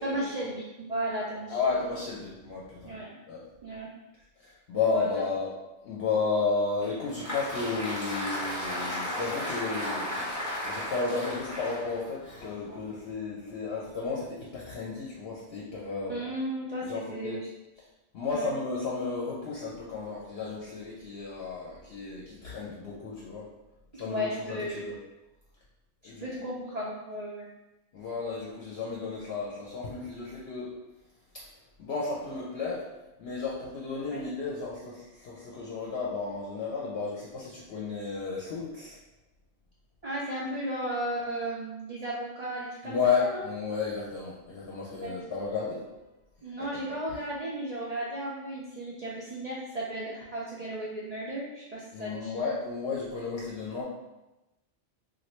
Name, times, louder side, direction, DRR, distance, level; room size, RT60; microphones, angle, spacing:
voice 1, 0.0-1.6 2.8-3.1 3.6-3.9 4.9-5.2 16.1-17.4 18.3-18.6 23.9-24.9 26.2-27.5 34.1-34.2 40.0-43.4 45.0-45.2 46.4-52.4, right 1 dB, 60° right, -6 dB, 0.4 m, -35 dB
voice 2, 1.5-2.9 3.3-3.4 4.4-5.5 5.8-10.3 10.6-16.1 16.9-17.4 18.1-23.5 23.9-24.9 26.0-26.3 27.9-30.7 31.3-31.5 31.8-32.9 33.2-39.0 42.8-46.1 51.9-53.8, left 4 dB, 65° left, -5 dB, 0.8 m, -33 dB
Applause, 6.8-13.1, left 1 dB, 15° left, 0.8 m, -35 dB
3.1 x 2.5 x 3.0 m, 0.99 s
omnidirectional pair, 1.2 m